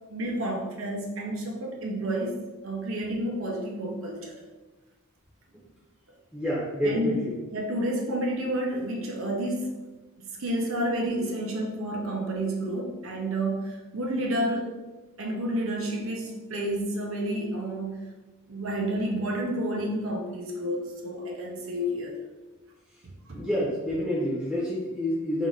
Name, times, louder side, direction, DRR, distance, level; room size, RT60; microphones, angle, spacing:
voice 1, 0.1-4.4 6.8-7.2 7.5-9.8 10.2-14.8 15.2-18.1 18.5-22.2 23.3-23.4, right 1 dB, 70° right, 0 dB, 0.7 m, -30 dB
voice 2, 6.3-7.4 23.3-25.5, equal, 5° right, -8 dB, 0.8 m, -28 dB
3.7 x 2.5 x 3.8 m, 1.2 s
head